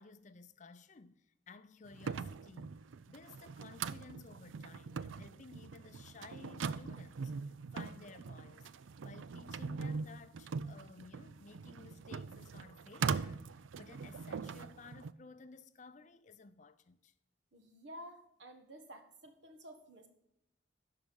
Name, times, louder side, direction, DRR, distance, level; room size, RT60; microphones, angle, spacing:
voice 1, 0.0-17.1, left 4 dB, 40° left, 0.5 m, -56 dB
sound 1, 1.9-15.1, right 5 dB, 90° right, 0.4 m, -41 dB
voice 2, 17.5-20.1, equal, 70° right, 1.5 m, -52 dB
12.0 x 5.0 x 5.3 m
head